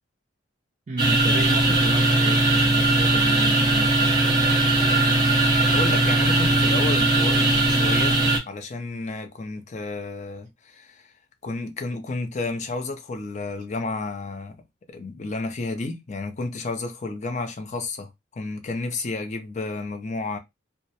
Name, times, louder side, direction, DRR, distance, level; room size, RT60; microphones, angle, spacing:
voice 1, 0.9-4.6, right 2 dB, 40° right, 0.4 m, -34 dB
sound 1, 1.0-8.4, right 2 dB, 20° right, 0.8 m, -19 dB
voice 2, 5.7-11.1 11.4-14.6 14.9-20.4, left 3 dB, 40° left, 0.4 m, -31 dB
2.3 x 2.1 x 2.7 m
head